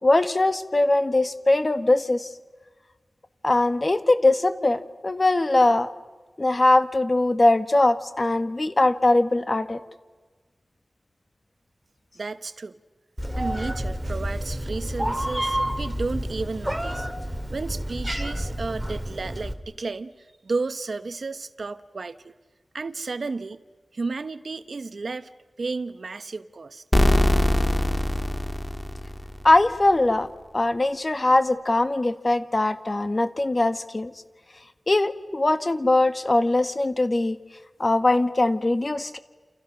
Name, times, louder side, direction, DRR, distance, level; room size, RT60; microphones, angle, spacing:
voice 1, 0.0-2.3 3.4-5.9 6.4-9.8 29.4-30.3 30.5-34.1 34.9-37.4 37.8-39.2, left 2 dB, 35° left, 10 dB, 1.6 m, -21 dB
voice 2, 12.1-12.7 13.4-17.1 17.5-20.1 20.4-22.3 22.7-23.6 23.9-25.3 25.6-26.8, right 3 dB, 65° right, 12 dB, 1.1 m, -32 dB
Meow, 13.2-19.5, equal, 5° right, 2.4 m, -29 dB
sound 1, 26.9-29.6, left 1 dB, 10° left, 1.7 m, -22 dB
29.5 x 29.0 x 6.3 m, 1.3 s
wide cardioid pair, 90°, 0 cm